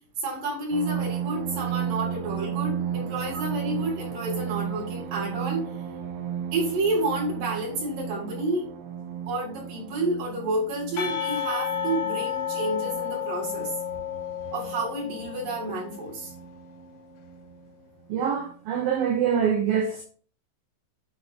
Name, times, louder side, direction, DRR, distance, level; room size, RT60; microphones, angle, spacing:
voice 1, 0.2-5.7 6.5-8.7 9.3-13.7 14.5-16.3, right 2 dB, 45° right, 5.4 m, -30 dB
sound 1, 0.7-17.7 18.4-18.5 18.9-19.2, right 9 dB, 70° right, 2.6 m, -35 dB
Percussion / Church bell, 11.0-16.0, left 9 dB, 90° left, 4.3 m, -31 dB
voice 2, 18.1-20.0, right 7 dB, 90° right, 2.0 m, -25 dB
9.9 x 4.7 x 4.2 m
omnidirectional pair, 5.6 m